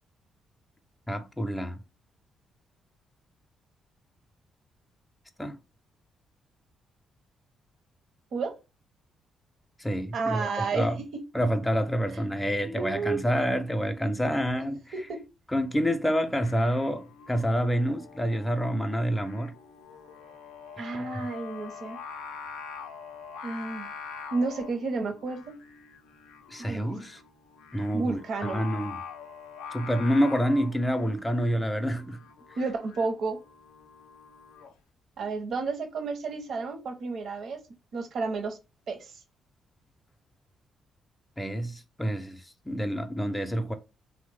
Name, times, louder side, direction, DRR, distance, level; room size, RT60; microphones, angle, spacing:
voice 1, 1.1-1.8 5.4-5.6 9.8-11.0 11.3-14.9 15.5-19.5 20.9-21.3 26.5-27.2 27.7-29.0 29.7-32.2 32.5-32.6 41.4-43.7, equal, 10° left, 0.4 m, -28 dB
voice 2, 10.1-10.9 12.6-13.2 14.9-15.2 20.8-22.0 23.4-23.9 24.3-25.4 26.6-26.8 27.9-28.6 32.6-33.4 35.2-37.6 37.9-38.6 38.9-39.1, right 4 dB, 65° right, 0.6 m, -31 dB
Singing, 16.2-34.7, left 6 dB, 85° left, 0.4 m, -44 dB
2.9 x 2.0 x 3.2 m
supercardioid pair, 50°, 0 cm